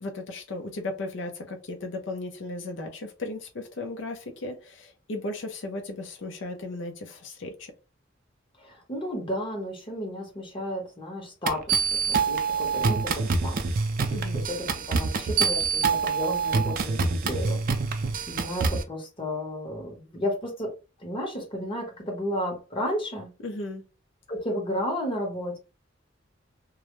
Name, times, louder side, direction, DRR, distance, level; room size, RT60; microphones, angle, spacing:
voice 1, 0.0-7.7 14.1-14.4 23.4-23.8, left 2 dB, 65° left, 4 dB, 0.5 m, -36 dB
voice 2, 8.6-13.6 14.1-17.6 17.9-18.0 18.3-20.7 21.0-23.3 24.3-25.6, equal, 25° left, -1 dB, 0.9 m, -33 dB
sound 1, 11.5-18.8, right 5 dB, 45° right, 0.4 m, -26 dB
2.3 x 2.0 x 3.0 m, 0.31 s
head